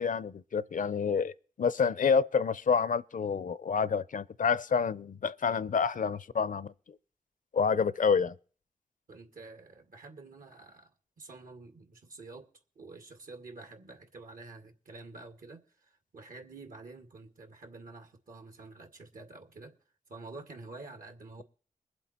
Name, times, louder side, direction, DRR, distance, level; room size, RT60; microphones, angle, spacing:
voice 1, 0.0-6.7 7.5-8.3, left 6 dB, 70° left, 0.6 m, -28 dB
voice 2, 9.1-10.9 11.2-12.5 12.8-19.8 20.1-21.4, right 3 dB, 80° right, 2.2 m, -48 dB
22.5 x 7.7 x 4.4 m
cardioid pair, 60°, 14 cm